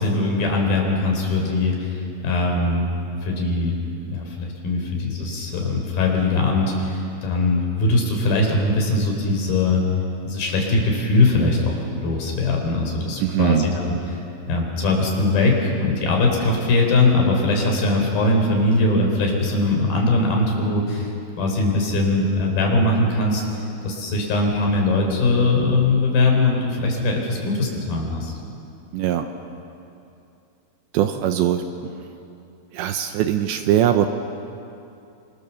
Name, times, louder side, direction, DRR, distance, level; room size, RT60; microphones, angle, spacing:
voice 1, 0.0-2.9 3.2-9.8 10.3-14.2 14.5-21.1 21.4-23.5 23.8-28.3, left 2 dB, 50° left, 1 dB, 5.6 m, -21 dB
voice 2, 13.2-13.7 28.9-29.3 30.9-32.0 32.7-34.1, right 11 dB, 80° right, 7 dB, 2.8 m, -21 dB
26.5 x 26.5 x 7.2 m, 2.7 s
omnidirectional pair, 5.6 m